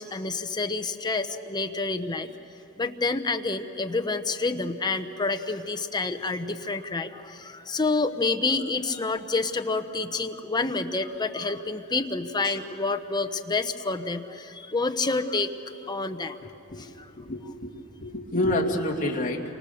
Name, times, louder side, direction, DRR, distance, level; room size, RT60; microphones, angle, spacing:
voice 1, 0.0-2.3 2.8-15.5 15.8-16.4 16.8-17.1, left 3 dB, 20° left, 7 dB, 0.9 m, -28 dB
voice 2, 16.7-17.7 18.0-19.4, left 1 dB, 35° left, 0 dB, 2.3 m, -28 dB
30.0 x 25.5 x 7.0 m, 3.0 s
head